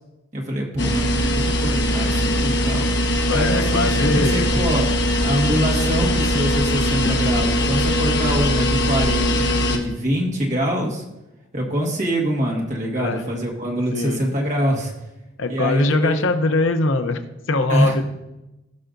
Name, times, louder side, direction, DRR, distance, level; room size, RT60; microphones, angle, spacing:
voice 1, 0.3-2.9 3.3-4.9 5.2-11.0 11.5-14.9 15.5-16.1 17.7-18.0, equal, 35° right, -1 dB, 1.6 m, -24 dB
sound 1, 0.8-9.8, equal, 60° left, 1.2 m, -21 dB
voice 2, 3.3-4.4 13.0-13.2 13.9-14.2 15.4-17.2 17.5-18.1, left 2 dB, 75° left, 8 dB, 0.7 m, -21 dB
17.0 x 5.7 x 2.6 m, 0.97 s
head